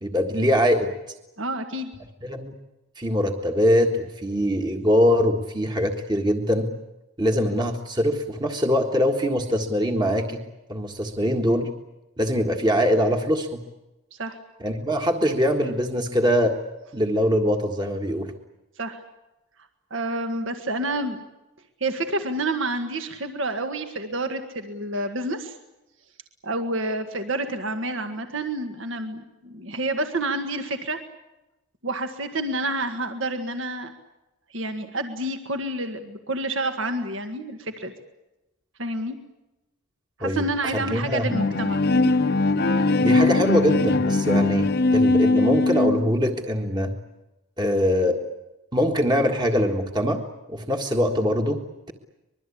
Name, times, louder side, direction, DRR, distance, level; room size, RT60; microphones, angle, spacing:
voice 1, 0.0-0.9 2.2-2.5 3.0-6.7 7.2-10.4 10.7-11.7 12.2-13.6 14.6-16.5 16.9-18.3 40.2-40.4 40.7-41.3 43.0-46.9 47.6-48.2 48.7-50.2 50.5-51.6, equal, 20° right, 3 dB, 1.6 m, -23 dB
voice 2, 1.4-1.9 14.1-14.4 18.8-19.0 19.9-21.2 21.8-25.6 26.4-31.0 31.8-33.9 34.5-37.9 38.8-39.2 40.2-42.1, right 2 dB, 60° right, 6 dB, 1.8 m, -29 dB
Bowed string instrument, 41.3-46.2, left 2 dB, 45° left, 1.0 m, -20 dB
25.0 x 22.0 x 8.6 m, 0.98 s
head